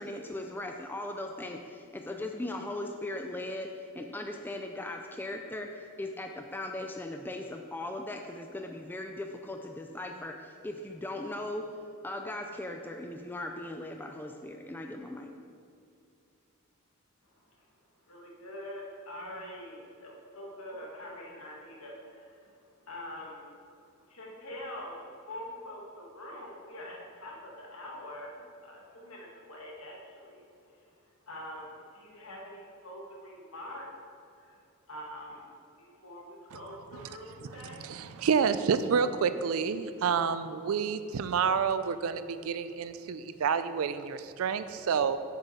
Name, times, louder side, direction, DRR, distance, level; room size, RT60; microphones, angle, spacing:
voice 1, 0.0-3.7 3.9-11.6 12.0-15.3, left 1 dB, 10° left, 3 dB, 0.3 m, -38 dB
voice 2, 18.1-23.5 24.0-30.4 30.8-31.0 31.3-33.9 34.4-34.6 34.9-37.8, left 1 dB, 70° left, -2 dB, 1.6 m, -44 dB
voice 3, 37.5-45.2, right 6 dB, 65° right, 12 dB, 0.4 m, -29 dB
7.4 x 6.9 x 4.2 m, 2.5 s
head